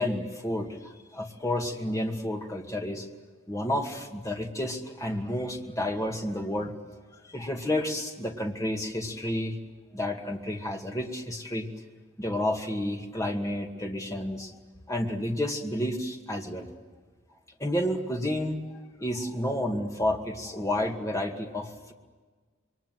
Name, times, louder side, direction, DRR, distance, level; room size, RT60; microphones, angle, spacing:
voice 1, 0.0-3.1 3.5-6.7 7.3-9.6 9.9-11.7 12.2-14.6 14.9-16.7 17.6-18.6 19.0-21.9, left 1 dB, 15° left, 2 dB, 2.3 m, -30 dB
28.0 x 23.0 x 7.7 m, 1.4 s
head